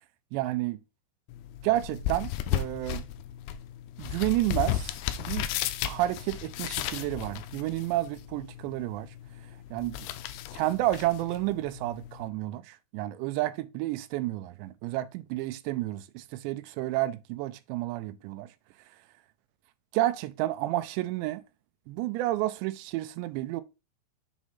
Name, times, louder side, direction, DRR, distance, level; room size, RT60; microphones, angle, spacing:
voice 1, 0.3-0.8 1.6-3.1 4.0-5.5 5.9-9.1 9.7-10.1 10.5-18.5 19.9-21.4 21.9-23.6, right 16 dB, 85° right, 2.8 m, -30 dB
sound 1, 1.3-12.3, left 11 dB, 90° left, 2.1 m, -35 dB
7.2 x 3.2 x 5.6 m
omnidirectional pair, 5.0 m